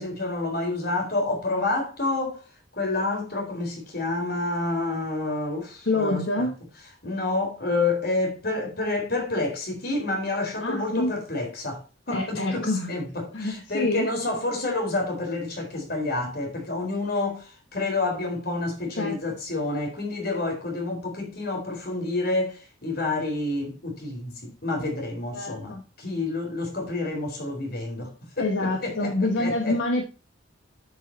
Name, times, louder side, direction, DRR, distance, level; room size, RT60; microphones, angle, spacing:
voice 1, 0.0-2.4 2.7-6.5 7.0-29.8, left 2 dB, 55° left, 4.2 m, -29 dB
voice 2, 5.9-6.5 10.6-11.1 12.1-12.9 13.3-14.1 18.9-19.2 25.3-25.8 28.4-30.1, left 2 dB, 75° left, 1.5 m, -26 dB
9.5 x 8.5 x 2.8 m
head